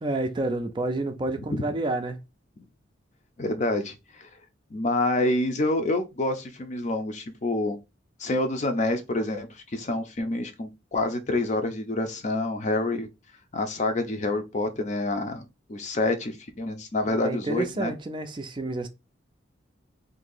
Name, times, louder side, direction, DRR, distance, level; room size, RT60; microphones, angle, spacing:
voice 1, 0.0-2.2 17.1-18.9, right 2 dB, 25° right, 0.4 m, -29 dB
voice 2, 3.4-4.3 4.7-7.8 8.2-13.1 13.5-15.4 15.7-17.9, left 2 dB, 40° left, 0.5 m, -27 dB
2.8 x 2.6 x 3.8 m
head